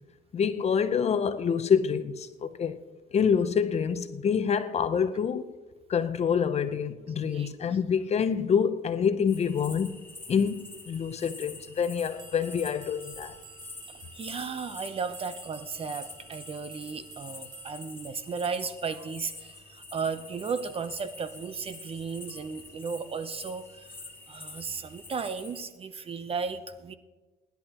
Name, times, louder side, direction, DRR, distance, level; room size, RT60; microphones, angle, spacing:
voice 1, 0.3-2.8 3.1-5.5 5.9-13.3, left 7 dB, 40° left, 0.8 m, -27 dB
sound 1, 9.3-25.6, left 3 dB, 10° left, 2.3 m, -47 dB
sound 2, 12.0-18.0, right 5 dB, 90° right, 2.9 m, -50 dB
voice 2, 14.1-24.0 24.3-26.9, right 5 dB, 35° right, 0.8 m, -35 dB
23.0 x 10.5 x 3.0 m
cardioid pair, 110°, 17 cm